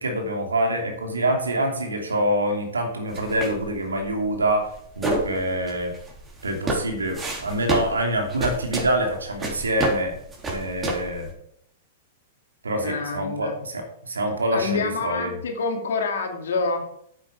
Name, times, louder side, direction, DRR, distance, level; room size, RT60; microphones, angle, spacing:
voice 1, 0.0-4.7 5.0-5.9 6.4-10.1 10.5-11.3 12.6-15.3, right 1 dB, 85° right, 4 dB, 2.9 m, -25 dB
sound 1, 3.1-11.3, right 2 dB, 20° right, 3.8 m, -30 dB
voice 2, 12.8-13.6 14.5-16.9, left 4 dB, 70° left, 4 dB, 2.6 m, -27 dB
9.5 x 8.6 x 5.2 m, 0.70 s
hypercardioid pair, 105°, 0 cm